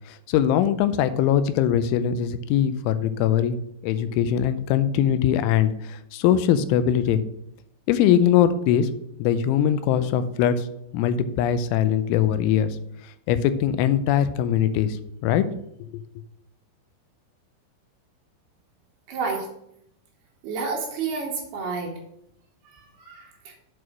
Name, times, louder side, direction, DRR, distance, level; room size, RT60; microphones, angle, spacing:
voice 1, 0.1-3.6 3.8-7.2 7.9-8.9 9.2-10.7 10.9-12.8 13.3-15.4 15.9-16.0, left 9 dB, 85° left, 12 dB, 3.0 m, -21 dB
voice 2, 19.1-19.5 20.4-21.9 22.8-23.5, right 4 dB, 70° right, 0 dB, 2.9 m, -30 dB
8.2 x 4.7 x 6.0 m, 0.75 s
omnidirectional pair, 5.4 m